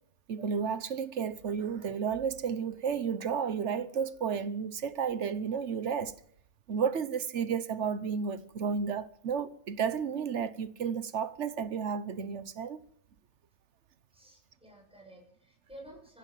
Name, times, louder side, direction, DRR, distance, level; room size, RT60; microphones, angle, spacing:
voice 1, 0.3-6.1 6.7-12.8, right 6 dB, 90° right, 1.3 m, -32 dB
voice 2, 14.1-16.2, right 1 dB, 5° right, 7.4 m, -52 dB
22.5 x 15.5 x 7.6 m
omnidirectional pair, 1.2 m